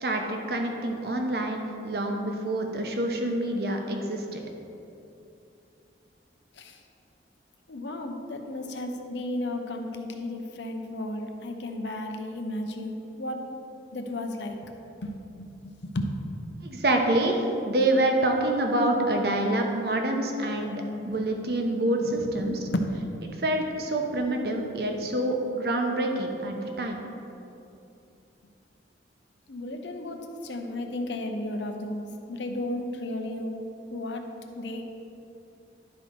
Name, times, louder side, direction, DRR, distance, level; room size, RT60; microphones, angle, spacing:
voice 1, 0.0-4.4 16.6-22.6 23.4-27.0, right 1 dB, 60° right, 2 dB, 0.9 m, -27 dB
voice 2, 7.7-13.4 13.9-14.7 15.0-16.1 22.0-22.9 26.6-26.8 29.5-33.6 33.9-34.3 34.5-34.9, left 1 dB, 80° left, 4 dB, 0.8 m, -34 dB
11.5 x 4.2 x 4.6 m, 2.8 s
head